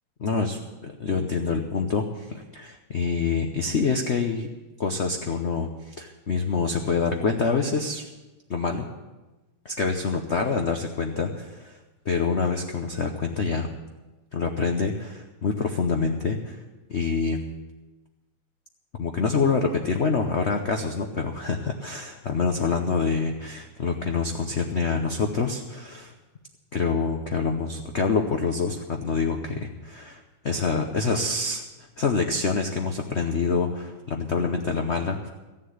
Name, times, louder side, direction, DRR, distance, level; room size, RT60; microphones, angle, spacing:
voice 1, 0.2-4.5 4.8-8.1 8.5-8.9 9.6-11.8 12.0-13.7 14.3-16.6 16.9-17.4 19.0-26.1 26.7-31.6 32.0-35.3, left 4 dB, 55° left, 4 dB, 0.7 m, -26 dB
14.5 x 7.5 x 9.4 m, 1.1 s
omnidirectional pair, 2.3 m